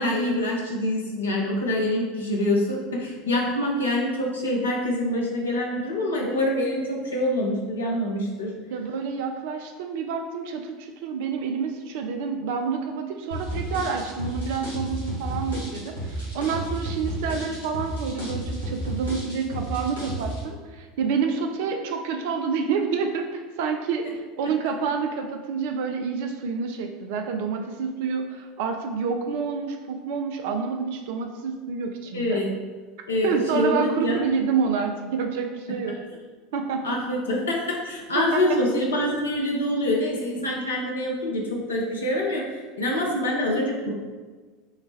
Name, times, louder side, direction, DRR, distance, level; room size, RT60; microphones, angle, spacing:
voice 1, 0.0-8.5 32.1-32.5 33.1-34.2 35.9-36.0 36.8-43.9, left 1 dB, 75° left, -2 dB, 0.8 m, -25 dB
voice 2, 8.7-32.4 33.2-36.0 36.5-37.0 38.1-38.6, right 5 dB, 60° right, 5 dB, 0.3 m, -28 dB
sound 1, 13.3-20.4, right 1 dB, 85° right, 1.4 m, -31 dB
5.6 x 2.1 x 3.2 m, 1.4 s
figure-of-eight pair, 75°, 0 cm